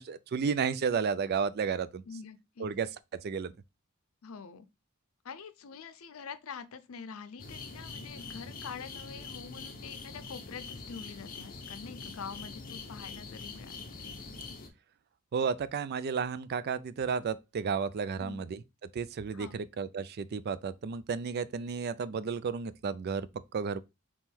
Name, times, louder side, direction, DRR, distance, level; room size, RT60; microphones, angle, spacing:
voice 1, 0.0-2.0 2.6-2.9 3.2-3.5 15.3-18.6 18.9-23.8, right 6 dB, 50° right, 0.4 m, -32 dB
voice 2, 2.1-2.7 4.2-4.7 5.2-14.1 18.2-18.4 19.3-19.6, left 6 dB, 85° left, 0.5 m, -45 dB
sound 1, 7.4-14.7, left 4 dB, 45° left, 0.7 m, -44 dB
3.6 x 3.0 x 4.4 m
head